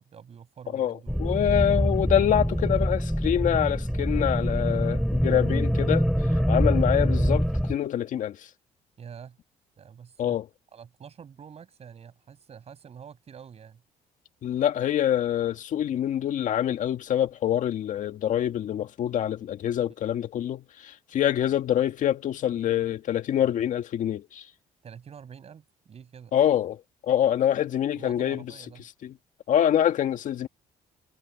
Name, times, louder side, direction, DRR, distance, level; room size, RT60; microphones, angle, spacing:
voice 1, 0.0-1.2 4.5-4.8 9.0-9.4 9.8-10.4 10.7-13.8 24.8-26.4 28.0-28.8, right 7 dB, 45° right, 6.4 m, -47 dB
voice 2, 0.7-6.1 6.5-8.5 10.2-10.5 14.4-24.4 26.3-26.8 27.1-28.5 29.0-29.1 29.5-30.5, left 10 dB, 60° left, 1.9 m, -25 dB
sound 1, 1.1-7.8, equal, ahead, 2.4 m, -25 dB
cardioid pair, 95°, 15 cm